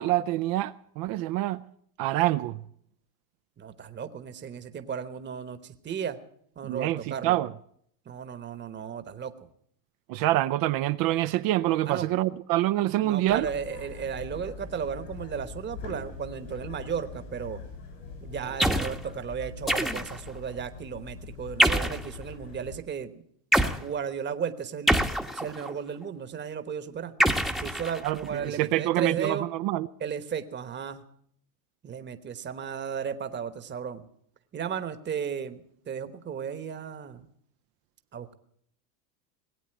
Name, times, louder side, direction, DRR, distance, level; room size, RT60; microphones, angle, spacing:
voice 1, 0.0-1.6 2.0-2.6 6.6-7.5 10.1-13.5 28.0-29.9, right 15 dB, 45° right, 0.5 m, -26 dB
voice 2, 3.6-6.2 6.6-7.4 8.1-9.3 11.9-12.1 13.0-17.6 18.2-23.2 23.8-24.9 25.3-27.1 27.6-29.5 30.0-31.0 31.8-34.0 34.5-37.3 38.1-38.3, right 7 dB, 20° right, 1.1 m, -34 dB
sound 1, 13.3-22.8, left 4 dB, 80° left, 7.7 m, -43 dB
sound 2, 18.6-19.0 19.7-20.3 21.6-22.1 23.5-23.8 24.9-25.7 27.2-28.3, equal, ahead, 0.9 m, -25 dB
19.0 x 8.3 x 9.0 m
supercardioid pair, 110°, 49 cm